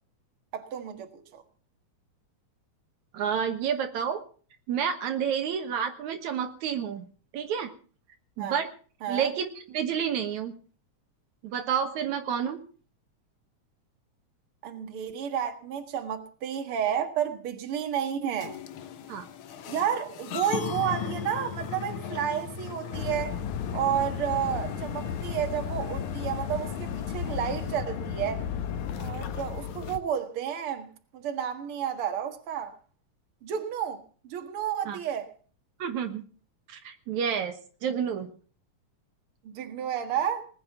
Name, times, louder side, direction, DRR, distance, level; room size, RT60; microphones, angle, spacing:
voice 1, 0.5-1.4 8.4-8.6 9.0-9.3 14.6-18.6 19.7-23.4 23.7-28.4 29.0-30.9 31.1-32.7 33.4-35.3 39.4-40.5, right 9 dB, 50° right, 2.4 m, -31 dB
voice 2, 3.1-4.2 4.7-7.0 7.3-7.7 8.4-8.7 9.1-10.5 11.4-12.6 19.1-19.3 34.9-35.0 35.8-36.2 36.7-37.5 37.8-38.3, right 8 dB, 75° right, 2.6 m, -29 dB
sound 1, 18.4-27.8, left 8 dB, 65° left, 1.4 m, -39 dB
sound 2, 22.9-30.0, left 8 dB, 80° left, 2.6 m, -34 dB
20.5 x 8.9 x 7.1 m
omnidirectional pair, 3.4 m